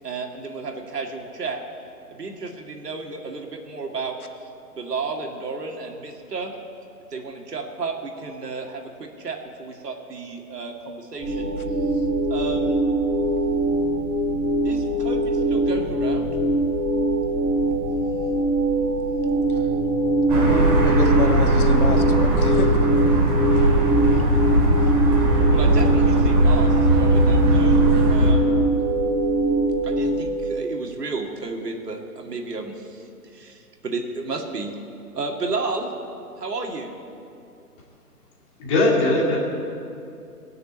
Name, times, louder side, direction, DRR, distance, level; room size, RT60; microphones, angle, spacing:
voice 1, 0.0-1.6 2.1-4.2 4.4-6.5 7.1-11.5 11.9-12.0 12.3-12.8 14.6-16.3 25.5-28.5 29.8-34.7 35.1-35.9 36.4-36.9, right 3 dB, 80° right, 2 dB, 2.2 m, -32 dB
sound 1, 11.2-30.2, right 2 dB, 10° right, 4.0 m, -22 dB
voice 2, 20.3-22.9, left 4 dB, 65° left, 6 dB, 1.4 m, -28 dB
sound 2, 20.3-28.3, right 1 dB, 25° right, 2.4 m, -19 dB
voice 3, 38.6-39.4, left 2 dB, 20° left, -3 dB, 2.1 m, -19 dB
18.5 x 6.7 x 8.5 m, 2.6 s
hypercardioid pair, 160°, 47 cm